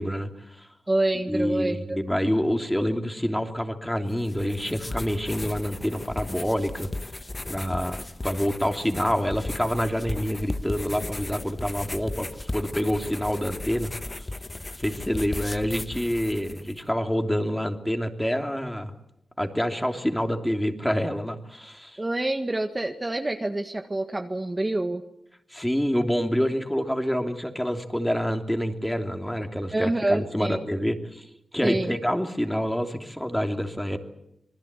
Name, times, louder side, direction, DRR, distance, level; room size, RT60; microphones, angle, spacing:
voice 1, 0.0-0.7 1.3-6.9 7.5-8.0 8.2-13.9 14.2-14.3 14.8-18.9 19.4-22.0 25.5-31.3 31.5-34.0, equal, 5° left, 5 dB, 3.0 m, -27 dB
voice 2, 0.9-2.0 22.0-25.0 29.7-30.6 31.6-32.0, right 2 dB, 25° right, 5 dB, 1.8 m, -27 dB
sound 1, 4.1-16.8, left 2 dB, 30° left, 1.3 m, -36 dB
27.0 x 20.0 x 8.3 m, 0.82 s
cardioid pair, 60°, 0 cm